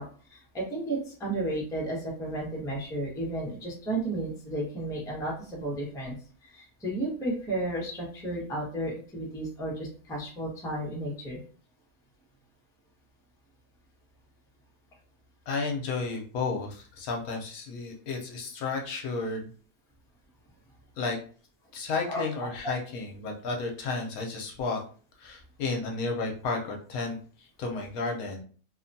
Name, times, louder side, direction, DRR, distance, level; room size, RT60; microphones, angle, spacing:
voice 1, 0.0-6.1 6.4-11.4 22.1-22.2, right 1 dB, 5° left, -3 dB, 0.5 m, -33 dB
voice 2, 15.5-19.5 21.0-21.2 21.7-24.8 25.2-28.4, left 3 dB, 70° left, 1 dB, 1.0 m, -32 dB
2.9 x 2.1 x 2.6 m, 0.42 s
omnidirectional pair, 1.7 m